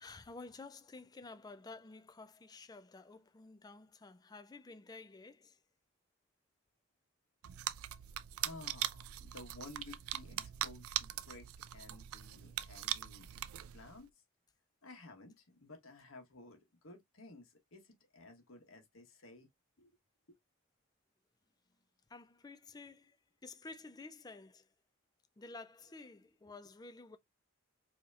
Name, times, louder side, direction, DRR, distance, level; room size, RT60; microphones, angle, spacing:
voice 1, 0.0-5.6 22.1-23.2 23.4-24.7 25.4-27.2, left 3 dB, 20° left, 0.4 m, -52 dB
sound 1, 7.4-14.0, right 12 dB, 90° right, 0.4 m, -41 dB
voice 2, 8.3-13.3 13.7-14.1 14.8-19.5 19.8-19.9, left 2 dB, 75° left, 1.3 m, -54 dB
4.9 x 2.9 x 2.5 m
head